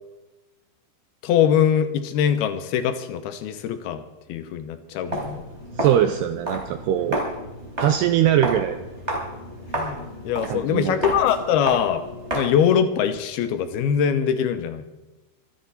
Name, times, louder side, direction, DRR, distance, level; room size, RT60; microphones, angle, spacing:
voice 1, 1.2-4.0 4.3-5.4 9.7-12.0 12.3-14.8, left 8 dB, 80° left, 10 dB, 2.3 m, -22 dB
Walk footsteps, 5.0-12.7, right 1 dB, 15° right, 3.7 m, -31 dB
voice 2, 5.8-7.2 7.8-8.8 10.5-11.0, right 11 dB, 85° right, 8 dB, 2.4 m, -21 dB
25.5 x 10.5 x 4.2 m, 1.0 s
omnidirectional pair, 5.5 m